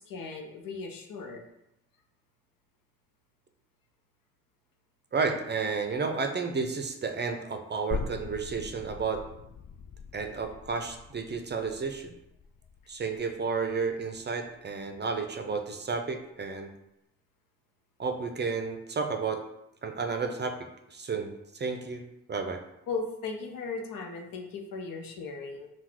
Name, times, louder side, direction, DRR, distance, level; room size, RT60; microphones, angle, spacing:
voice 1, 0.1-1.4 22.9-25.7, left 4 dB, 65° left, 4 dB, 0.7 m, -37 dB
voice 2, 5.1-9.2 10.1-12.1 12.9-16.7 18.0-19.4 19.8-22.0 22.3-22.6, right 4 dB, 30° right, 5 dB, 0.6 m, -32 dB
sound 1, 7.9-15.2 15.5-15.6, left 5 dB, 40° left, 0.4 m, -42 dB
3.7 x 2.4 x 4.5 m, 0.85 s
supercardioid pair, 50°, 36 cm